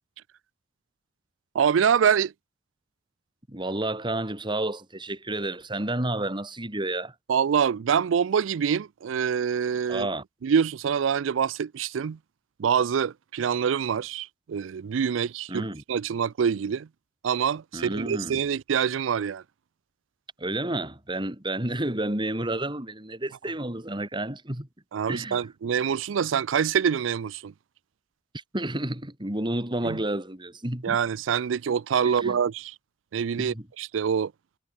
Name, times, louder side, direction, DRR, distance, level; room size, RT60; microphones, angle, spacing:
voice 1, 1.5-2.3 7.3-10.1 10.4-12.2 12.6-16.9 17.2-19.4 24.9-27.5 29.8-30.0 30.8-32.7 33.1-34.3, right 7 dB, 90° right, 0.4 m, -25 dB
voice 2, 3.5-7.1 9.9-10.2 15.5-15.8 17.7-18.4 20.4-24.7 25.1-25.5 28.3-31.0 32.0-32.4 33.4-33.7, right 1 dB, 25° right, 3.6 m, -30 dB
head